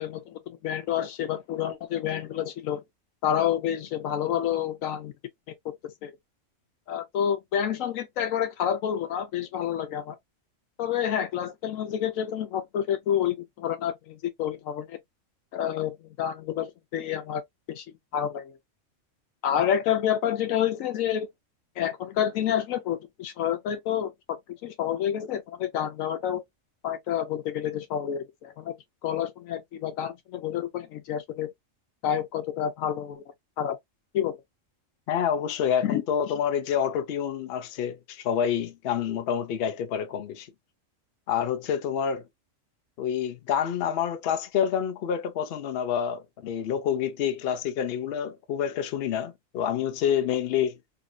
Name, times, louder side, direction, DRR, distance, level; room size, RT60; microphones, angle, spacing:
voice 1, 0.0-2.8 3.2-5.1 6.0-6.1 6.9-10.1 10.8-15.0 15.5-17.4 17.7-17.8 18.1-18.5 19.4-21.3 21.8-26.4 26.8-28.7 29.0-31.5 32.0-33.2 33.6-33.8 34.1-34.4 35.8-36.0, left 9 dB, 90° left, 1.1 m, -29 dB
voice 2, 35.1-40.5 41.3-42.2 43.0-50.8, left 8 dB, 60° left, 0.7 m, -28 dB
2.7 x 2.6 x 2.3 m
omnidirectional pair, 1.4 m